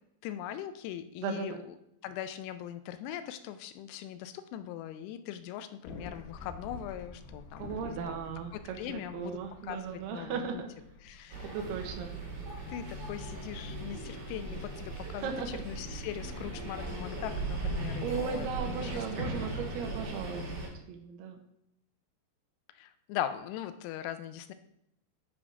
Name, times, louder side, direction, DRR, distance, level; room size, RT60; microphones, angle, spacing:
voice 1, 0.2-1.6 2.0-8.2 8.5-10.6 11.0-11.6 12.7-18.5 18.8-19.5 22.7-24.5, left 11 dB, 90° left, 10 dB, 3.0 m, -40 dB
voice 2, 1.2-1.6 7.6-10.7 11.4-12.1 15.2-15.6 18.0-21.4, right 6 dB, 75° right, 3 dB, 2.7 m, -37 dB
sound 1, 5.8-12.8, left 3 dB, 70° left, 2.6 m, -49 dB
sound 2, 11.3-20.7, right 2 dB, 60° right, 4.3 m, -38 dB
10.0 x 3.6 x 4.8 m, 0.78 s
omnidirectional pair, 5.3 m